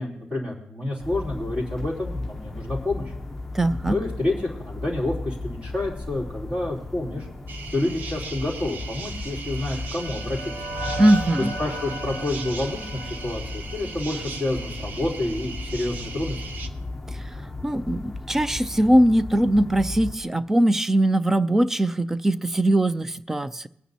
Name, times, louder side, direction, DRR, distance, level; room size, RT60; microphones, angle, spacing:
voice 1, 0.0-3.1 3.8-7.3 7.7-10.5 11.6-16.4, left 2 dB, 25° right, -4 dB, 3.3 m, -29 dB
sound 1, 1.0-20.2, left 2 dB, 5° left, 0.8 m, -36 dB
voice 2, 3.5-4.0 11.0-11.5 17.6-23.7, right 1 dB, 10° right, 15 dB, 0.4 m, -21 dB
sound 2, 7.5-16.7, right 4 dB, 50° right, 0.8 m, -39 dB
sound 3, 9.1-14.4, right 1 dB, 80° right, 3.6 m, -36 dB
24.0 x 9.2 x 2.8 m, 0.78 s
wide cardioid pair, 165°, 4 cm